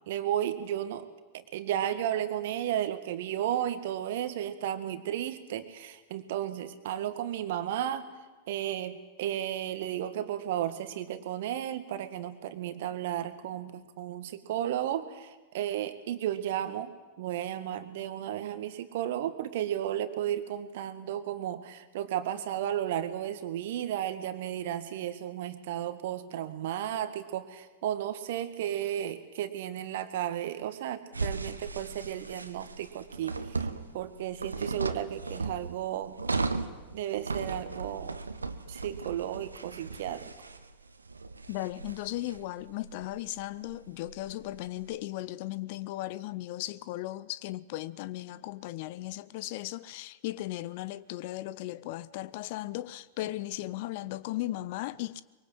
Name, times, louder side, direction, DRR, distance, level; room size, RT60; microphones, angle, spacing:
voice 1, 0.1-1.0 1.3-8.1 8.5-16.9 17.2-33.7 33.9-36.1 36.9-38.2 38.7-40.3, right 11 dB, 55° right, 2.0 m, -33 dB
sound 1, 31.1-44.9, right 3 dB, 80° right, 1.3 m, -37 dB
voice 2, 41.5-55.2, left 16 dB, 50° left, 0.8 m, -36 dB
24.5 x 23.5 x 7.9 m
figure-of-eight pair, 90°, 0 cm